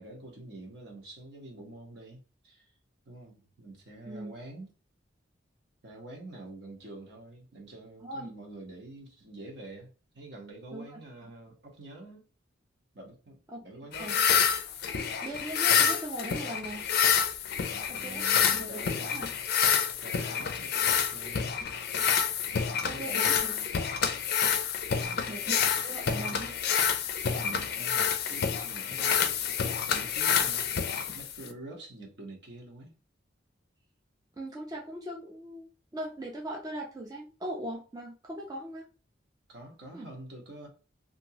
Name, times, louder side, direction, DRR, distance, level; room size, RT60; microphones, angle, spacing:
voice 1, 0.0-2.7 3.0-4.7 5.8-9.9 10.1-12.3 12.9-14.2 17.6-19.2 20.0-21.5 22.7-23.9 24.9-25.3 26.2-26.4 27.4-33.0 39.5-40.7, right 2 dB, 60° right, 1.1 m, -47 dB
voice 2, 4.1-4.4 8.0-8.3 10.7-11.3 13.5-13.6 14.0-14.2 15.2-16.9 17.9-18.2 18.5-19.3 22.8-23.5 25.3-26.5 34.4-38.8 39.9-40.1, right 1 dB, 20° right, 0.5 m, -40 dB
sound 1, 13.9-31.5, left 7 dB, 55° left, 0.4 m, -28 dB
sound 2, 21.6-22.8 23.3-23.6 24.3-24.4 24.9-25.6, left 1 dB, 20° left, 0.9 m, -51 dB
2.9 x 2.6 x 2.8 m
head